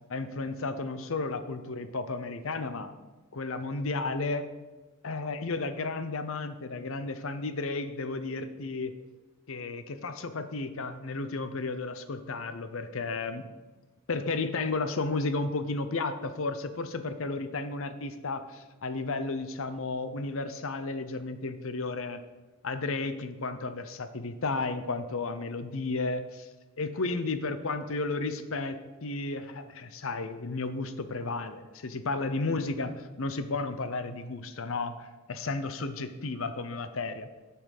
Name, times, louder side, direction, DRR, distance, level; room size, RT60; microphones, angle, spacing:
voice 1, 0.1-2.9 3.3-4.5 5.0-9.0 9.5-13.4 14.1-22.2 22.6-26.5 26.8-37.3, left 3 dB, 70° left, 11 dB, 0.8 m, -33 dB
11.0 x 5.8 x 6.6 m, 1.2 s
head